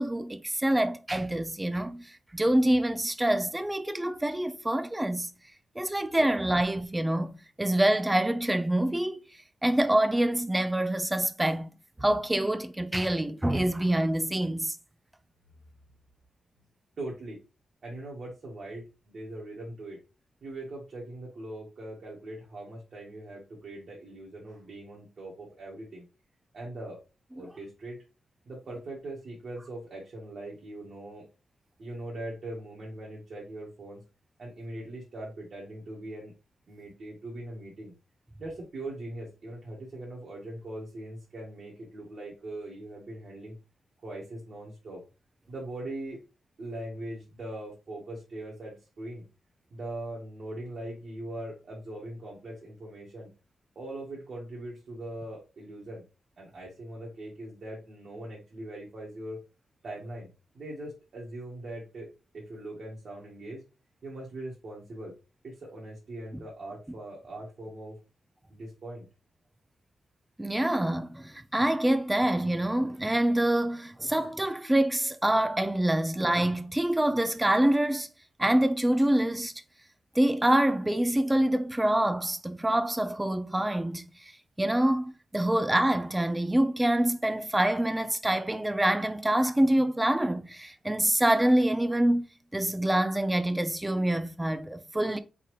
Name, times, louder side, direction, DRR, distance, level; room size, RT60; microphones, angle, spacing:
voice 1, 0.0-2.0 2.3-5.3 5.8-9.2 9.6-11.7 12.0-14.8 70.4-78.1 78.4-79.5 80.2-84.0 84.6-92.3 92.5-95.2, right 1 dB, 10° right, 0.6 m, -26 dB
voice 2, 17.0-17.4 17.8-20.0 20.4-26.1 26.5-27.0 27.3-28.0 28.5-31.3 31.8-34.0 34.4-36.3 36.7-37.9 38.4-43.6 44.0-45.0 45.5-46.2 46.6-49.2 49.7-53.3 53.7-56.0 56.4-59.4 59.8-62.1 62.3-63.6 64.0-65.1 65.4-68.0 68.5-69.1, right 1 dB, 60° right, 1.7 m, -41 dB
4.1 x 4.0 x 3.1 m
cardioid pair, 75°, 0 cm